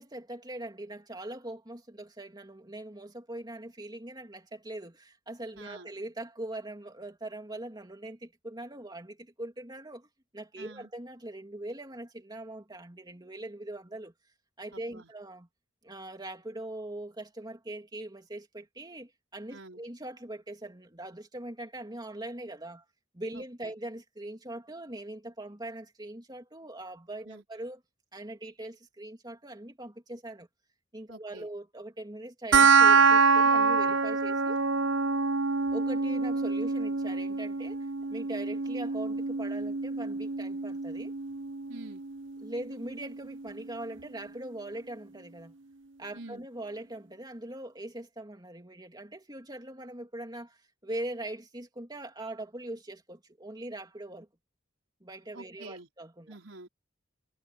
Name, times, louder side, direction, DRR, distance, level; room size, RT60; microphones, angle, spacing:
voice 1, 0.0-10.1 10.3-14.1 14.6-15.5 15.8-22.8 23.1-27.8 28.1-30.5 30.9-34.6 35.7-41.1 42.4-45.5 46.0-54.3 55.0-56.3, right 1 dB, 20° right, 3.1 m, -41 dB
voice 2, 5.6-5.9 10.6-10.9 14.7-15.1 19.5-19.8 23.3-23.7 27.3-27.4 31.1-31.5 41.7-42.0 46.1-46.5 55.3-55.9 56.3-56.7, right 2 dB, 85° right, 4.4 m, -47 dB
sound 1, 32.5-43.5, right 4 dB, 70° right, 0.7 m, -26 dB
head